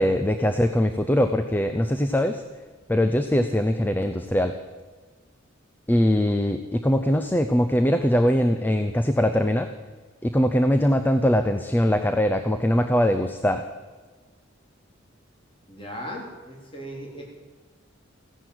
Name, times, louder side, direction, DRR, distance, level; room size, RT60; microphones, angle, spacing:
voice 1, 0.0-2.4 2.9-4.5 5.9-9.7 10.2-13.7, equal, 10° left, 8 dB, 0.6 m, -22 dB
voice 2, 15.7-17.2, equal, 25° left, -2 dB, 3.6 m, -37 dB
15.5 x 11.0 x 7.9 m, 1.4 s
head